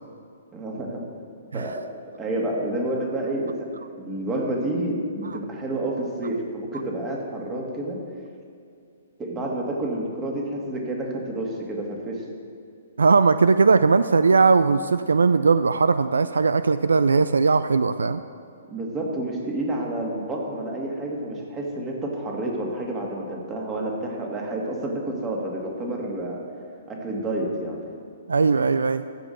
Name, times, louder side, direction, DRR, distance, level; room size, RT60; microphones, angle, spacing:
voice 1, 0.5-1.0 1.5-1.8 2.2-3.7 4.0-8.0 9.2-12.2 18.7-26.4 26.9-27.8, right 1 dB, 20° right, -1 dB, 2.2 m, -29 dB
voice 2, 13.0-18.2 28.3-29.0, right 4 dB, 80° right, 13 dB, 0.3 m, -19 dB
14.5 x 5.4 x 6.6 m, 2.4 s
figure-of-eight pair, 125°, 0 cm